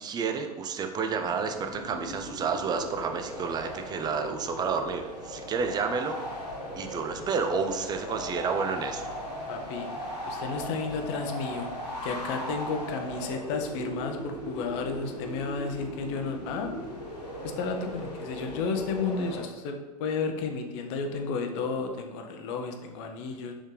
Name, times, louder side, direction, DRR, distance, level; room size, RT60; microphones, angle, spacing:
voice 1, 0.0-6.2 6.8-9.0, right 5 dB, 20° right, 6 dB, 0.4 m, -30 dB
sound 1, 1.1-19.4, equal, 90° left, 1.2 m, -38 dB
voice 2, 9.5-9.9 10.3-11.7 12.0-16.7 17.4-23.5, left 4 dB, 50° left, 4 dB, 0.6 m, -32 dB
4.3 x 3.5 x 3.2 m, 1.2 s
figure-of-eight pair, 90°, 20 cm